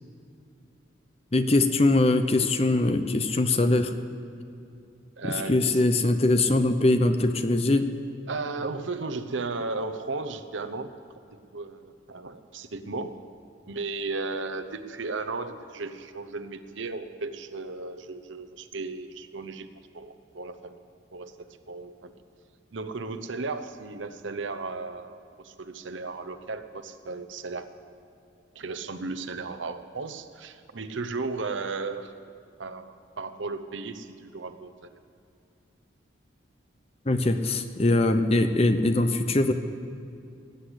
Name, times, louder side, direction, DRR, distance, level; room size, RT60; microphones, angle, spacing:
voice 1, 1.3-3.9 5.2-7.9 37.1-39.5, left 2 dB, 30° left, 8 dB, 0.8 m, -22 dB
voice 2, 5.2-5.8 8.3-10.9 11.5-13.1 13.7-19.7 19.9-20.8 21.1-22.1 22.7-27.7 28.5-32.1 32.6-34.9, right 3 dB, 80° right, 9 dB, 0.8 m, -35 dB
18.5 x 8.2 x 8.1 m, 2.5 s
head